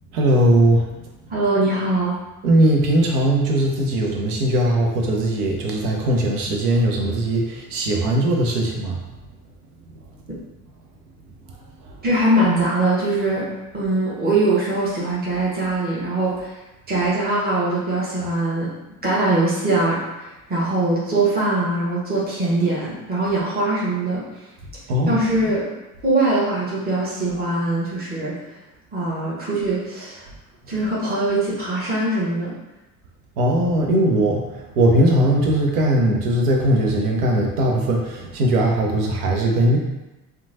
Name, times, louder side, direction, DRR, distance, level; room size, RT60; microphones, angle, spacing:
voice 1, 0.1-0.9 2.4-9.0 24.9-25.5 33.4-34.4 34.8-39.8, right 1 dB, 80° right, 1 dB, 0.7 m, -19 dB
voice 2, 1.3-2.2 12.0-13.5 13.7-16.6 16.9-18.7 19.0-24.2 25.1-25.7 26.0-28.4 28.9-30.3 30.7-32.6, right 2 dB, 20° right, -7 dB, 1.0 m, -22 dB
2.9 x 2.2 x 2.6 m, 1.0 s
hypercardioid pair, 60°, 46 cm